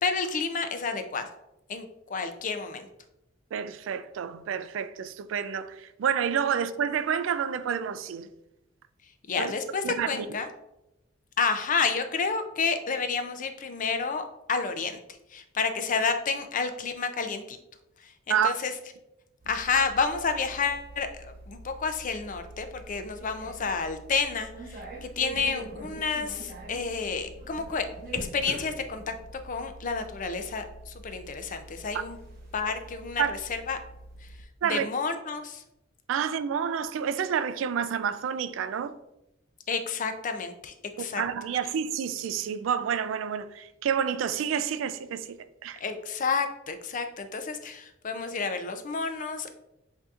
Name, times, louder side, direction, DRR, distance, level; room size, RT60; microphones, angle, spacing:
voice 1, 0.0-1.3 1.7-2.9 9.3-10.5 11.4-15.0 15.3-17.6 18.0-18.7 19.5-27.9 28.3-29.1 29.4-32.2 32.5-33.8 34.7-35.6 39.7-41.2 45.8-49.5, left 5 dB, 45° left, 0.4 m, -30 dB
voice 2, 3.5-8.3 9.4-9.5 9.8-10.3 18.3-18.5 33.2-33.3 34.6-34.9 36.1-38.9 41.2-45.4 45.6-45.8, right 8 dB, 80° right, 0.3 m, -29 dB
sound 1, 19.4-34.4, right 2 dB, 50° right, 1.1 m, -44 dB
7.5 x 2.7 x 2.4 m
head